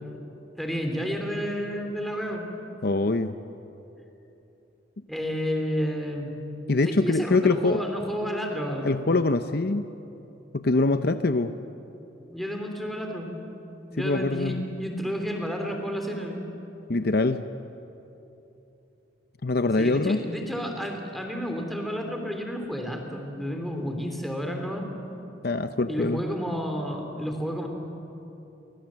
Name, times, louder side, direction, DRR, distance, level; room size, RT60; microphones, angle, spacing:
voice 1, 0.6-2.5 5.1-6.4 6.8-9.1 12.3-13.3 13.9-16.4 19.8-24.9 25.9-27.7, equal, ahead, 3 dB, 3.1 m, -31 dB
voice 2, 2.8-3.4 6.7-7.8 8.8-9.9 10.5-11.5 14.0-14.6 16.9-17.4 19.4-20.2 25.4-26.2, left 3 dB, 55° left, 10 dB, 0.7 m, -24 dB
29.0 x 24.5 x 7.5 m, 3.0 s
head